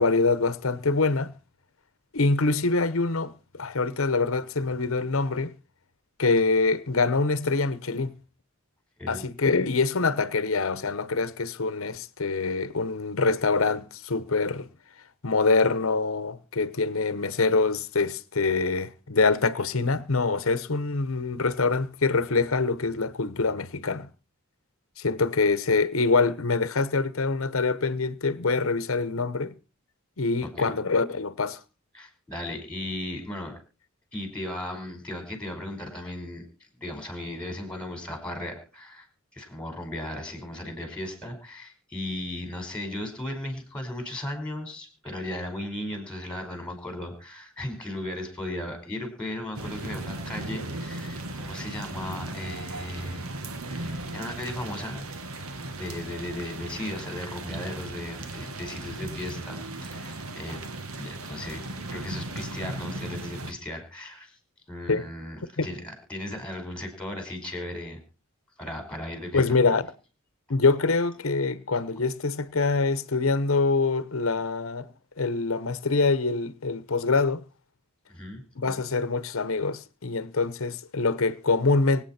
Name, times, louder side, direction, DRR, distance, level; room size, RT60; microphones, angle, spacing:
voice 1, 0.0-1.3 2.1-5.5 6.2-8.1 9.1-14.7 15.2-24.1 25.0-29.5 30.2-31.6 64.9-65.0 65.6-65.7 69.3-69.9 70.5-77.4 78.6-82.0, left 3 dB, 70° left, 1.0 m, -25 dB
voice 2, 31.9-33.6 34.1-36.4 36.8-39.1 39.3-53.3 53.6-55.1 55.8-60.6 61.0-64.4 64.7-68.0 68.6-69.6 78.1-78.4, left 1 dB, 5° left, 4.6 m, -36 dB
sound 1, 49.5-63.5, right 2 dB, 90° right, 1.6 m, -37 dB
24.5 x 8.9 x 4.3 m
head